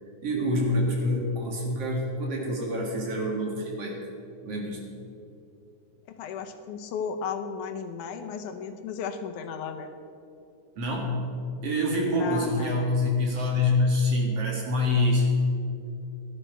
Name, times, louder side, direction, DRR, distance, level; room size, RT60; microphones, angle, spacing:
voice 1, 0.2-4.0 4.4-4.8 10.8-11.3 11.6-15.3, left 1 dB, 55° right, -1 dB, 2.8 m, -26 dB
voice 2, 6.1-9.9 12.1-12.8, left 6 dB, 85° left, 7 dB, 2.4 m, -35 dB
14.5 x 12.5 x 4.5 m, 2.6 s
omnidirectional pair, 3.5 m